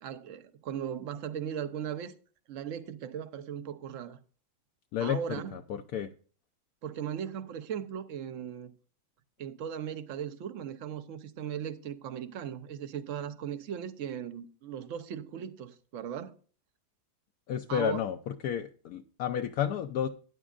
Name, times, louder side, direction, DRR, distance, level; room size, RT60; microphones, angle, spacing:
voice 1, 0.0-2.1 2.5-4.2 5.0-5.6 6.8-8.7 9.4-16.4 17.7-18.0, right 9 dB, 60° right, 0.9 m, -38 dB
voice 2, 5.5-6.1 17.5-18.2 18.4-20.1, left 9 dB, 75° left, 1.0 m, -31 dB
12.5 x 10.0 x 2.5 m
omnidirectional pair, 1.7 m